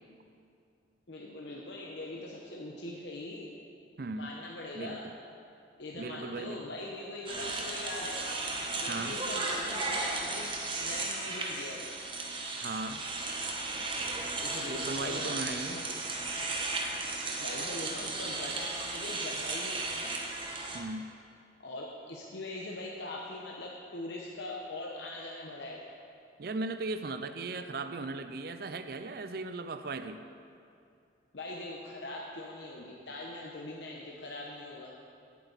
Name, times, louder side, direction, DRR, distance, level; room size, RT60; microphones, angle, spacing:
voice 1, 1.1-3.5 4.2-5.1 5.8-8.3 8.8-10.5 10.8-12.0 14.4-15.8 17.4-20.2 21.6-25.8 31.3-35.0, left 2 dB, 70° left, -2 dB, 1.0 m, -42 dB
voice 2, 4.0-4.3 4.7-5.0 5.9-6.6 8.9-9.2 12.6-13.0 14.7-15.8 20.7-21.1 26.4-30.2, right 3 dB, 55° right, 10 dB, 0.4 m, -37 dB
sound 1, 7.3-20.8, right 3 dB, 25° right, 1.0 m, -35 dB
16.0 x 8.4 x 4.1 m, 2.5 s
head